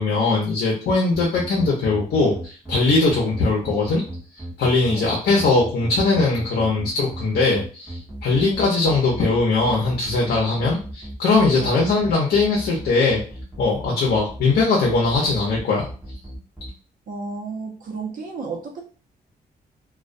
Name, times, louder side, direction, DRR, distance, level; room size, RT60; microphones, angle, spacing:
voice 1, 0.0-4.0 4.6-13.2 13.6-15.9, left 3 dB, 80° left, -3 dB, 0.7 m, -20 dB
sound 1, 1.1-16.7, right 1 dB, 5° right, 1.0 m, -35 dB
voice 2, 8.4-8.7 11.6-11.9 14.1-14.2 17.1-18.8, right 4 dB, 55° right, 1 dB, 0.7 m, -33 dB
2.3 x 2.2 x 2.5 m, 0.38 s
cardioid pair, 120°, 16 cm